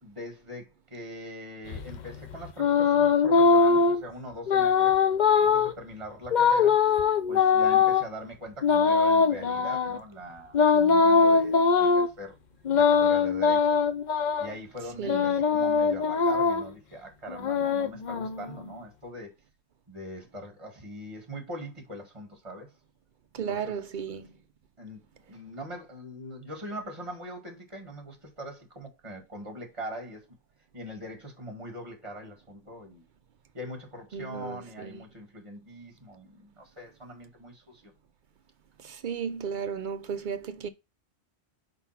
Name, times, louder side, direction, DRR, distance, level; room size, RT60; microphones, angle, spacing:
voice 1, 0.0-5.0 5.4-6.8 7.3-12.4 12.7-13.8 14.4-19.3 19.9-22.7 23.4-24.2 24.8-30.3 30.7-33.0 33.5-37.9, equal, 30° right, 1.9 m, -42 dB
sound 1, 1.7-4.0 4.5-5.7 6.3-8.0 8.6-10.0 10.5-12.1 12.7-14.5 15.1-16.7 17.3-18.7, left 5 dB, 50° left, 0.7 m, -22 dB
voice 2, 15.0-15.3 23.3-24.3 34.1-35.0 38.8-40.7, right 7 dB, 50° right, 0.8 m, -34 dB
4.7 x 3.9 x 5.7 m
omnidirectional pair, 1.1 m